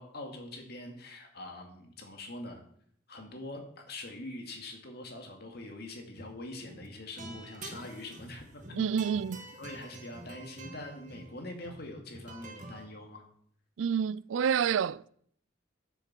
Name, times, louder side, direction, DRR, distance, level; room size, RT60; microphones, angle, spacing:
voice 1, 0.0-2.6 3.1-8.9 9.6-13.2, left 2 dB, 55° left, 2.3 m, -44 dB
sound 1, 6.1-6.4 6.7-12.9, right 2 dB, 40° right, 1.5 m, -47 dB
voice 2, 8.8-9.5 13.8-15.1, right 7 dB, 80° right, 0.4 m, -28 dB
10.0 x 6.8 x 7.4 m
head